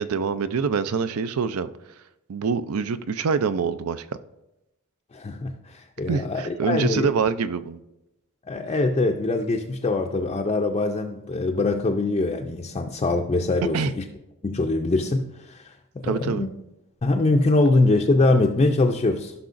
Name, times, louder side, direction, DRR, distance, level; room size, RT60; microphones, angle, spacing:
voice 1, 0.0-1.7 2.3-4.1 6.1-7.8 13.7-13.9 16.0-16.4, right 5 dB, 75° right, 13 dB, 0.5 m, -25 dB
voice 2, 5.1-7.1 8.5-14.0 14.4-16.5 17.0-19.3, left 2 dB, 25° left, 2 dB, 0.4 m, -23 dB
15.5 x 5.7 x 2.5 m, 0.93 s
head